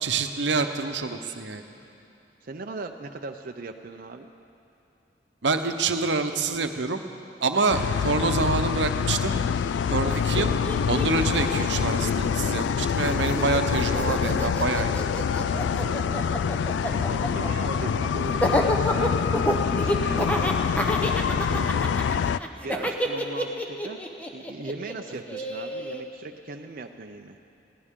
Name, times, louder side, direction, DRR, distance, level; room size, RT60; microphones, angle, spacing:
voice 1, 0.0-1.6 5.4-7.0 7.4-9.4 9.9-10.5 10.9-14.9 21.5-21.7, right 4 dB, 85° right, 7 dB, 0.9 m, -26 dB
voice 2, 2.4-4.3 15.4-19.2 19.6-21.1 22.0-27.4, right 3 dB, 55° right, 4 dB, 0.6 m, -39 dB
sound 1, 7.7-22.4, left 7 dB, 80° left, 0.3 m, -26 dB
Laughter, 10.1-10.2 10.3-12.7 13.0-26.0, equal, 10° left, 1.0 m, -29 dB
21.0 x 17.0 x 3.7 m, 2.7 s
head